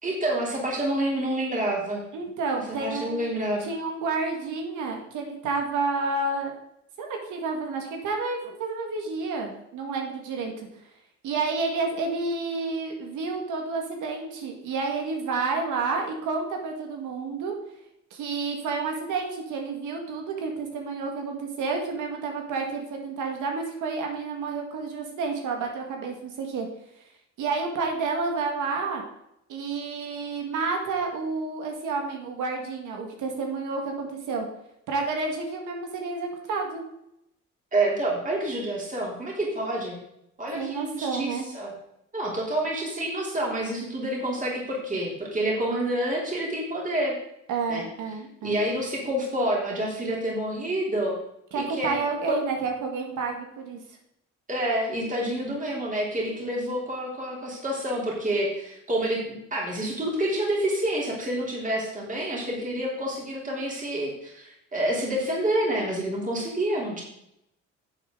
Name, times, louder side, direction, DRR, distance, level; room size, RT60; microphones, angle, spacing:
voice 1, 0.0-2.0 2.8-3.6 37.7-40.0 40.4-41.7 42.1-47.2 47.7-47.8 48.4-51.1 51.5-52.0 52.3-52.4 54.5-67.0, right 1 dB, 25° right, -3 dB, 3.2 m, -28 dB
voice 2, 2.1-3.3 3.6-6.5 7.0-10.7 11.2-17.5 18.1-26.7 27.4-29.0 29.5-34.5 34.9-36.8 40.5-41.5 47.5-48.6 51.5-53.8, right 4 dB, 85° right, 2 dB, 1.8 m, -30 dB
11.0 x 7.2 x 3.8 m, 0.80 s
cardioid pair, 90°, 30 cm